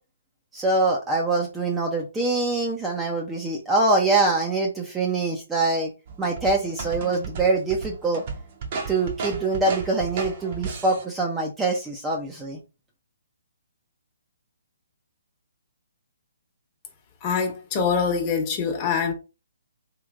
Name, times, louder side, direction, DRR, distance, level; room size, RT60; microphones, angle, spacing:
voice 1, 0.5-5.9 6.2-8.2 8.9-12.6, right 3 dB, 10° right, 0.6 m, -24 dB
sound 1, 6.1-11.0, right 4 dB, 45° right, 0.9 m, -34 dB
voice 2, 17.2-19.1, left 6 dB, 30° left, 1.2 m, -24 dB
3.4 x 3.1 x 2.4 m
hypercardioid pair, 145°, 0 cm